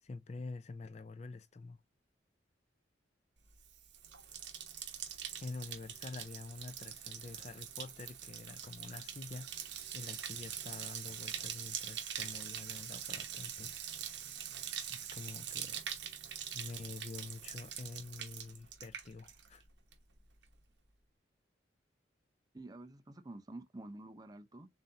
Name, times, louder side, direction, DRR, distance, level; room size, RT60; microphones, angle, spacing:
voice 1, 0.0-1.8 5.4-16.2 16.5-19.6, left 3 dB, 35° left, 0.4 m, -48 dB
Bathtub (filling or washing), 3.5-19.6 19.9-20.4, right 9 dB, 65° right, 1.0 m, -44 dB
voice 2, 22.5-24.7, right 2 dB, 20° right, 0.6 m, -49 dB
7.1 x 2.7 x 2.7 m
head